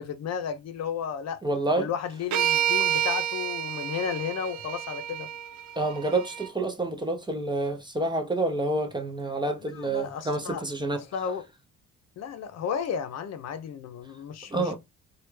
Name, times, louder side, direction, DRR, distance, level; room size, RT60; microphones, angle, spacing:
voice 1, 0.0-1.4 1.8-5.3 9.6-10.6 10.9-11.5 12.2-14.7, left 7 dB, 60° left, 0.6 m, -33 dB
voice 2, 1.4-1.9 5.8-11.0 14.5-14.7, right 2 dB, 15° right, 0.6 m, -28 dB
sound 1, 2.3-6.5, right 10 dB, 70° right, 0.5 m, -29 dB
3.2 x 2.3 x 3.1 m
cardioid pair, 90°, 30 cm